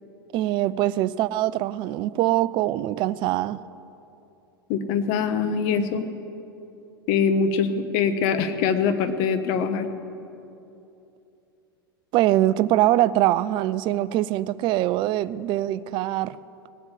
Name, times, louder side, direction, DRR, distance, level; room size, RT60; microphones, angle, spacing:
voice 1, 0.3-3.6 12.1-16.4, right 14 dB, 40° right, 0.5 m, -23 dB
voice 2, 4.7-6.1 7.1-9.9, left 6 dB, 50° left, 1.3 m, -23 dB
19.0 x 8.0 x 8.3 m
figure-of-eight pair, 90°, 12 cm